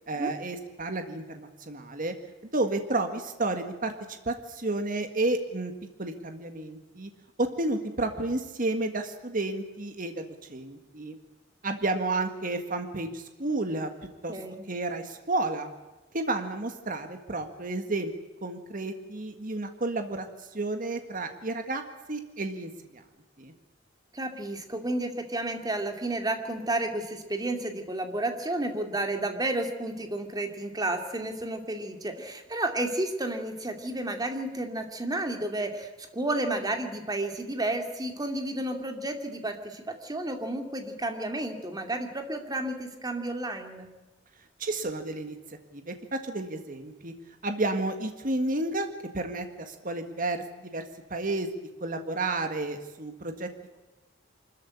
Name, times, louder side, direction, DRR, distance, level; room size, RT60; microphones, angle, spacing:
voice 1, 0.1-2.1 2.5-5.7 6.0-7.1 7.4-11.2 11.6-13.9 14.2-14.3 14.7-15.7 16.1-18.1 18.4-20.3 20.5-21.8 22.1-22.7 23.4-23.5 44.6-45.4 45.7-47.1 47.4-48.9 49.1-50.8 51.1-51.5 51.8-53.5, right 2 dB, 45° right, 7 dB, 1.8 m, -31 dB
voice 2, 14.3-14.6 24.1-43.9, right 1 dB, 20° right, 5 dB, 2.5 m, -31 dB
24.5 x 14.0 x 9.8 m, 1.1 s
head